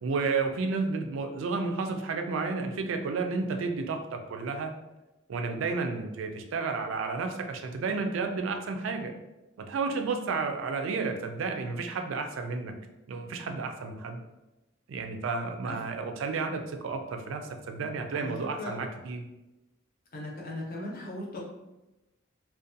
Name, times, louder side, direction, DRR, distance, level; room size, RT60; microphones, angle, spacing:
voice 1, 0.0-4.7 5.3-9.1 9.6-12.7 13.1-14.2 14.9-17.4 17.7-19.3, right 4 dB, 70° right, 5 dB, 0.3 m, -31 dB
voice 2, 18.1-18.8 20.1-21.4, left 1 dB, 45° left, -3 dB, 0.6 m, -38 dB
2.5 x 2.2 x 2.6 m, 0.99 s
head